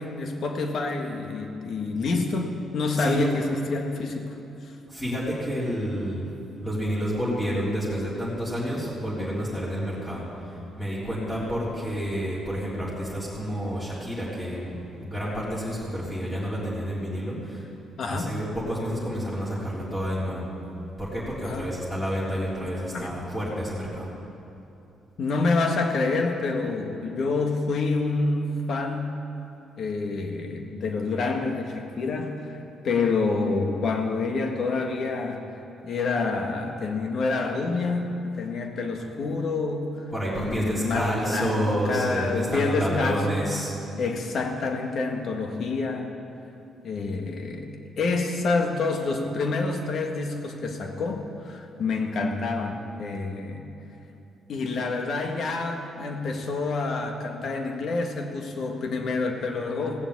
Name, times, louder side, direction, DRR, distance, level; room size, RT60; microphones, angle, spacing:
voice 1, 0.0-4.4 4.6-4.7 18.0-18.3 21.4-21.7 22.9-23.1 25.2-29.2 29.8-32.6 32.8-35.5 35.8-40.1 40.3-43.6 44.0-46.1 46.8-47.7 48.0-53.7 54.5-60.1, left 3 dB, 60° left, 3 dB, 1.7 m, -27 dB
voice 2, 3.0-3.4 4.9-6.3 6.6-17.6 18.1-20.5 21.0-24.1 40.1-43.7, equal, 10° left, -9 dB, 3.8 m, -29 dB
16.5 x 7.2 x 8.4 m, 2.9 s
cardioid pair, 90°, 0 cm